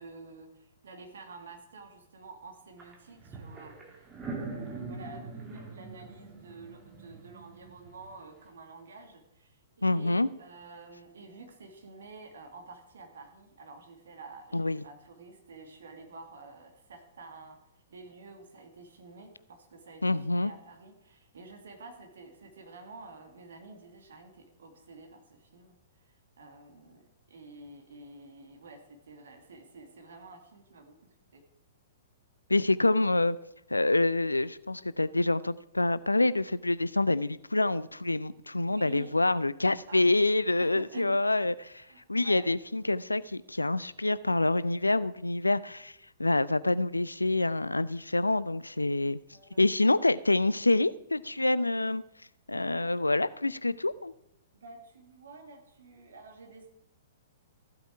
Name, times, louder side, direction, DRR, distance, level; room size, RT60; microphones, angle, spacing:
voice 1, 0.0-4.1 4.4-31.4 38.6-39.2 39.9-40.3 40.6-41.2 41.6-42.5 49.3-49.7 52.5-53.0 54.5-56.7, right 3 dB, 60° right, 1.9 m, -50 dB
sound 1, 2.8-2.9 3.2-8.1, right 3 dB, 15° right, 2.3 m, -42 dB
voice 2, 9.8-10.3 14.5-14.8 20.0-20.5 32.5-33.4 33.7-41.8 42.1-49.2 49.6-52.0 52.5-54.1, left 2 dB, 85° left, 0.4 m, -27 dB
14.5 x 7.9 x 4.7 m
figure-of-eight pair, 110°, 0 cm